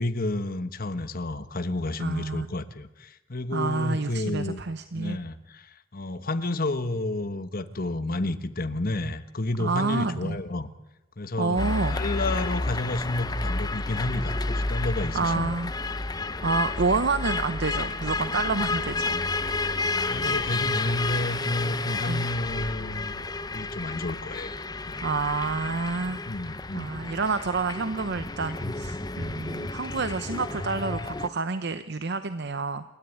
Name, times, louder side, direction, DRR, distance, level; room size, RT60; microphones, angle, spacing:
voice 1, 0.0-4.6 4.9-10.7 11.2-15.6 20.0-23.2 23.5-24.5 24.9-25.1 26.3-27.0 28.6-28.7 29.1-29.3, left 2 dB, 45° left, 11 dB, 1.3 m, -31 dB
voice 2, 2.0-2.5 3.5-5.2 9.6-10.4 11.4-12.0 15.1-15.7 16.4-19.2 22.1-22.2 25.0-32.8, right 4 dB, 55° right, 11 dB, 0.8 m, -28 dB
sound 1, 11.6-31.3, left 3 dB, 20° left, 0.7 m, -31 dB
29.0 x 13.0 x 9.4 m, 0.96 s
head